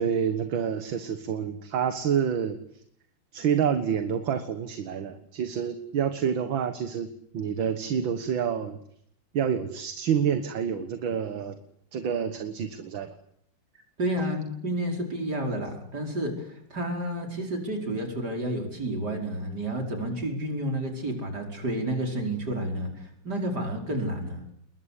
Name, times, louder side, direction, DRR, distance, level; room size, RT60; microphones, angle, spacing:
voice 1, 0.0-2.6 3.3-7.1 7.3-8.8 9.3-11.6 11.9-13.2, right 7 dB, 70° right, 9 dB, 2.2 m, -28 dB
voice 2, 14.0-24.4, right 1 dB, 50° right, 3 dB, 5.6 m, -30 dB
27.5 x 22.0 x 8.4 m, 0.70 s
omnidirectional pair, 2.2 m